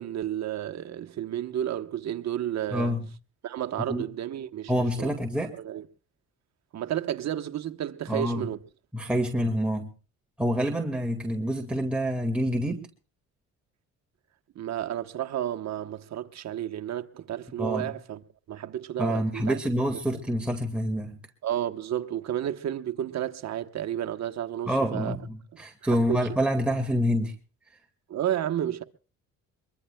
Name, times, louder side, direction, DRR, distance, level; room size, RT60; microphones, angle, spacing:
voice 1, 0.0-2.9 3.4-4.7 5.0-5.1 5.6-5.8 6.7-8.6 14.5-18.2 18.5-19.6 21.4-25.2 25.9-26.3 28.1-28.8, right 11 dB, 60° right, 1.0 m, -31 dB
voice 2, 2.7-3.1 3.9-4.0 4.7-5.6 8.1-8.5 8.9-9.9 10.4-12.9 17.6-17.9 19.0-21.2 24.7-27.4, equal, 5° right, 1.9 m, -27 dB
23.0 x 22.5 x 2.2 m
cardioid pair, 90°, 30 cm